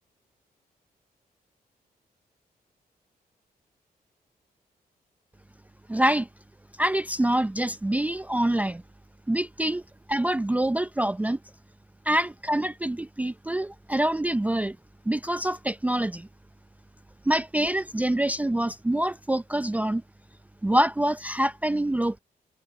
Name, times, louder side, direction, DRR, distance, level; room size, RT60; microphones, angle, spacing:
voice 1, 5.9-6.3 6.8-8.8 9.3-9.8 10.1-11.4 12.1-14.8 15.1-16.3 17.2-20.0 20.6-22.2, right 1 dB, 10° right, 0.5 m, -25 dB
cardioid pair, 90°, 16 cm